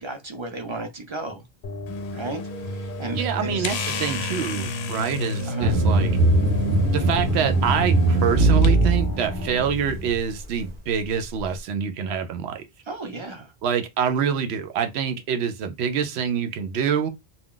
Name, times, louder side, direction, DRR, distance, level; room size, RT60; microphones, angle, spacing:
voice 1, 0.0-1.4 2.1-2.4 2.7-3.7 5.5-5.8 12.9-13.5, right 2 dB, 40° right, 0.4 m, -34 dB
sound 1, 1.6-9.6, left 1 dB, 60° left, 0.7 m, -33 dB
sound 2, 1.9-8.7, left 7 dB, 90° left, 0.8 m, -37 dB
voice 2, 3.1-6.1 6.9-12.6 13.6-17.1, right 8 dB, 85° right, 0.8 m, -26 dB
sound 3, 5.6-10.2, right 2 dB, 55° right, 0.8 m, -20 dB
2.4 x 2.2 x 3.6 m
omnidirectional pair, 1.1 m